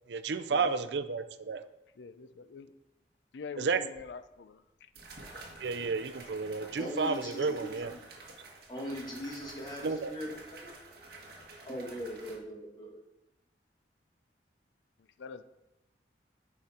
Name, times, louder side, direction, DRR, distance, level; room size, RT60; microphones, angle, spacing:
voice 1, 0.1-1.6 3.6-3.8 5.6-7.9 9.8-10.1, right 4 dB, 80° right, 12 dB, 0.5 m, -31 dB
voice 2, 2.0-2.7 3.3-4.9 15.2-15.4, left 5 dB, 85° left, 12 dB, 0.5 m, -45 dB
sound 1, 3.9-4.0 4.9-12.4, right 2 dB, 60° right, 1.7 m, -50 dB
voice 3, 6.8-7.7 8.7-10.4 11.7-13.0, equal, 25° left, -2 dB, 1.7 m, -39 dB
10.5 x 4.9 x 4.3 m, 0.92 s
head